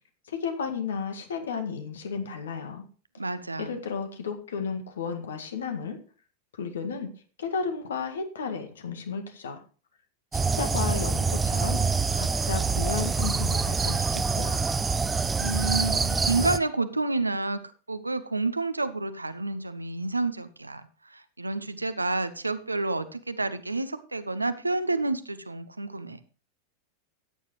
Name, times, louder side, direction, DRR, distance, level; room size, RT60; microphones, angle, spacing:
voice 1, 0.3-2.8 3.6-6.0 6.5-7.1 7.4-9.6 10.3-14.7, left 6 dB, 65° left, 6 dB, 1.8 m, -33 dB
voice 2, 3.2-3.8 15.4-26.2, right 3 dB, 80° right, 12 dB, 0.9 m, -29 dB
sound 1, 10.3-16.6, right 4 dB, 15° right, 0.5 m, -26 dB
13.5 x 9.3 x 3.1 m, 0.38 s
figure-of-eight pair, 90°, 0 cm